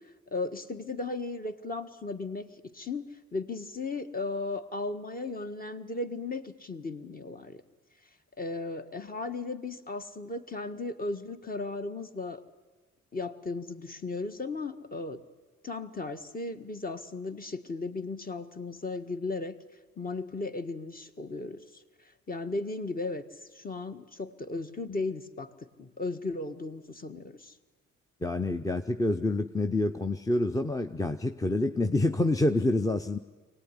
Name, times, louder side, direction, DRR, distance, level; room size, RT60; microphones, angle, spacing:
voice 1, 0.3-7.6 8.4-12.4 13.1-15.2 15.6-19.5 20.0-21.8 22.3-23.2 23.5-27.5, left 3 dB, 30° left, 8 dB, 1.6 m, -36 dB
voice 2, 28.2-33.2, left 2 dB, 10° left, 8 dB, 0.7 m, -27 dB
23.5 x 18.5 x 9.9 m, 1.3 s
cardioid pair, 90°, 30 cm